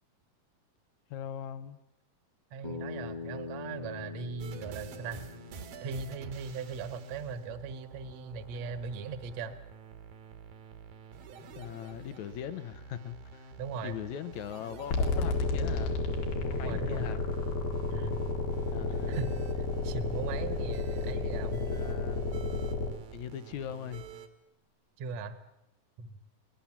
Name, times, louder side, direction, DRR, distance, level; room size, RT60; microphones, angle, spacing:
voice 1, 1.1-1.8 11.6-13.5 13.8-16.0 16.4-17.2 18.7-19.2 21.6-22.2 23.1-24.0, left 9 dB, 70° left, 12 dB, 2.0 m, -40 dB
voice 2, 2.5-5.3 5.8-9.5 13.6-14.0 16.6-17.1 17.9-18.3 19.1-21.7 25.0-25.4 26.0-26.2, right 4 dB, 55° right, 11 dB, 2.1 m, -39 dB
Bass guitar, 2.6-6.9, left 4 dB, 35° left, 0.6 m, -43 dB
sound 1, 4.4-24.3, right 5 dB, 75° right, 3.5 m, -49 dB
sound 2, 14.9-22.9, left 3 dB, 85° left, 4.1 m, -31 dB
23.5 x 19.0 x 7.3 m, 0.84 s
omnidirectional pair, 4.2 m